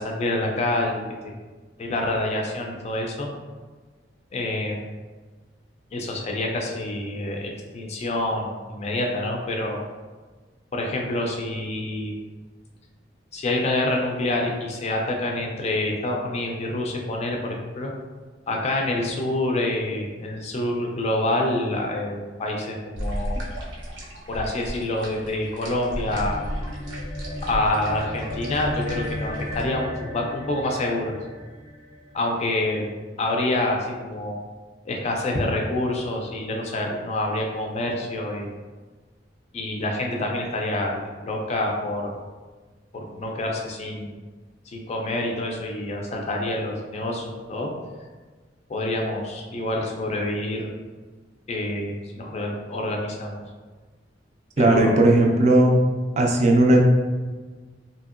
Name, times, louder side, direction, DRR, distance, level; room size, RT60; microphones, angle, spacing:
voice 1, 0.0-1.3 1.8-3.3 4.3-4.9 5.9-9.8 10.7-12.1 13.3-17.9 18.5-23.4 24.3-26.4 27.4-31.1 32.1-34.4 34.8-38.5 39.5-42.1 42.9-44.1 44.7-47.7 48.7-50.7 51.5-53.4 54.6-55.0, left 1 dB, 35° left, 0 dB, 0.4 m, -27 dB
sound 1, 22.9-29.6, equal, 80° right, 0.7 m, -34 dB
sound 2, 25.8-32.5, left 1 dB, 85° left, 0.5 m, -35 dB
voice 2, 54.6-55.7 56.2-56.8, right 1 dB, 35° right, 1 dB, 0.4 m, -17 dB
2.8 x 2.7 x 2.4 m, 1.4 s
head